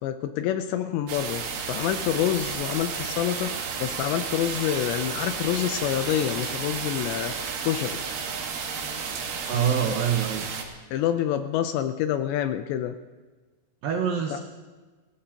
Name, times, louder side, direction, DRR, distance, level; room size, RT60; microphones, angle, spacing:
voice 1, 0.0-7.3 7.7-8.0 10.9-13.0 14.3-14.4, left 11 dB, 80° left, 8 dB, 2.6 m, -27 dB
sound 1, 1.1-10.6, right 6 dB, 65° right, 3.2 m, -32 dB
voice 2, 9.5-10.5 13.8-14.4, right 7 dB, 90° right, 1 dB, 2.0 m, -25 dB
27.5 x 16.0 x 2.9 m, 1.3 s
omnidirectional pair, 5.6 m